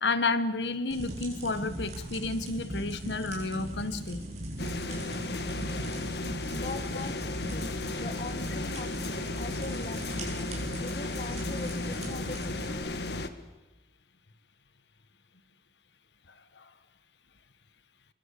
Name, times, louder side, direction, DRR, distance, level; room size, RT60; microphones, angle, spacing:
voice 1, 0.0-4.2 16.5-16.7, left 3 dB, 80° left, 12 dB, 1.3 m, -31 dB
sound 1, 0.9-12.7, right 1 dB, 40° right, 7.7 m, -41 dB
sound 2, 4.6-13.3, left 2 dB, 65° left, 1.7 m, -34 dB
voice 2, 6.5-7.2 7.5-10.3 10.8-12.8, left 2 dB, 40° left, 10 dB, 1.4 m, -42 dB
24.0 x 23.0 x 8.5 m, 1.1 s
head